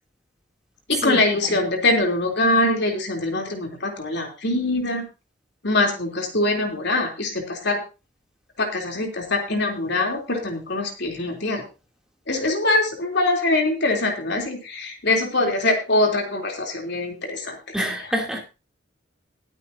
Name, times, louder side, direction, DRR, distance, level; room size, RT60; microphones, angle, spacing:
voice 1, 0.9-5.0 5.6-7.8 8.6-11.6 12.3-18.1, left 2 dB, 60° left, 2 dB, 3.5 m, -23 dB
voice 2, 17.7-18.5, equal, 5° right, 0 dB, 2.9 m, -26 dB
20.5 x 9.0 x 2.8 m, 0.29 s
head